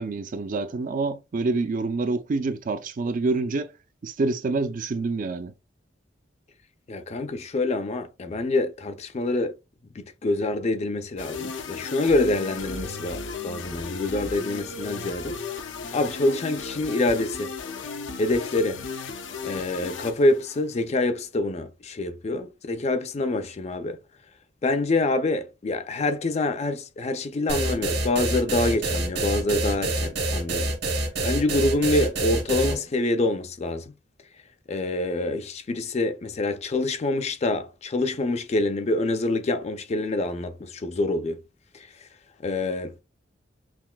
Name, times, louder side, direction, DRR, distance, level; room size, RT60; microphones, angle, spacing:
voice 1, 0.0-3.7 4.0-5.5, right 3 dB, 45° right, 0.4 m, -27 dB
voice 2, 6.9-9.6 9.9-15.4 15.9-17.5 18.2-18.8 19.4-24.0 24.6-30.7 31.2-33.9 34.7-41.4 41.7-42.1 42.4-42.9, left 2 dB, 35° left, 0.4 m, -26 dB
sound 1, 11.2-20.8, left 4 dB, 80° left, 0.6 m, -35 dB
sound 2, 27.5-32.8, right 2 dB, 60° right, 1.2 m, -26 dB
5.9 x 2.5 x 2.2 m
head